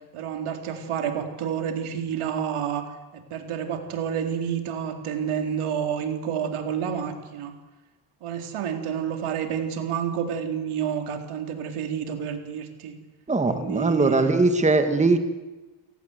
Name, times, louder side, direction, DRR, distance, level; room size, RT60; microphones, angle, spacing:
voice 1, 0.1-2.9 3.3-7.5 8.2-13.0 13.4-14.3, right 8 dB, 80° right, 5 dB, 3.8 m, -29 dB
voice 2, 13.3-15.2, right 3 dB, 15° right, 8 dB, 1.7 m, -20 dB
29.5 x 18.5 x 8.1 m, 1.2 s
cardioid pair, 130°, 50 cm